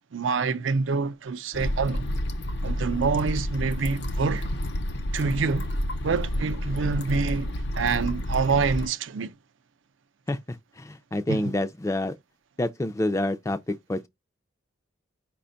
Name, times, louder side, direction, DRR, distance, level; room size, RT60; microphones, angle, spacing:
voice 1, 0.1-2.1 2.6-4.5 5.1-5.7 6.0-9.3 11.3-11.5, right 4 dB, 80° right, 0.5 m, -26 dB
sound 1, 1.5-8.9, left 1 dB, 60° left, 0.6 m, -30 dB
voice 2, 10.3-12.1 12.6-14.1, left 1 dB, 15° left, 0.3 m, -28 dB
5.0 x 2.3 x 3.8 m
head